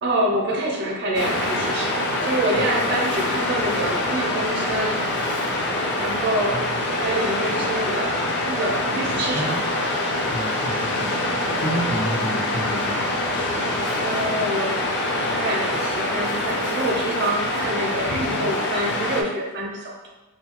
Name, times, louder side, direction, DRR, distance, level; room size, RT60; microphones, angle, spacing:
voice 1, 0.0-5.0 6.0-6.6 6.9-9.6 14.0-14.8 15.2-20.1, right 1 dB, 55° right, -1 dB, 0.6 m, -26 dB
Waves surf, 1.1-19.2, left 1 dB, 55° left, 0.4 m, -25 dB
voice 2, 10.3-11.2 11.6-13.0, right 1 dB, 70° left, -5 dB, 0.9 m, -30 dB
2.7 x 2.1 x 2.9 m, 1.1 s
head